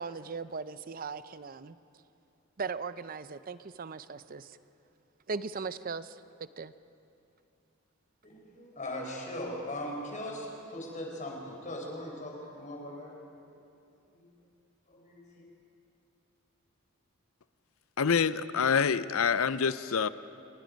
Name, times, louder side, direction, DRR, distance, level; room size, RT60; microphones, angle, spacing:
voice 1, 0.0-1.8 2.6-4.6 5.3-6.7, right 4 dB, 40° right, 14 dB, 0.6 m, -38 dB
voice 2, 8.2-13.2 14.1-14.3 14.9-15.5, left 1 dB, 35° left, 0 dB, 4.4 m, -39 dB
voice 3, 18.0-20.1, left 6 dB, 75° left, 15 dB, 0.6 m, -26 dB
29.0 x 19.5 x 5.3 m, 2.6 s
head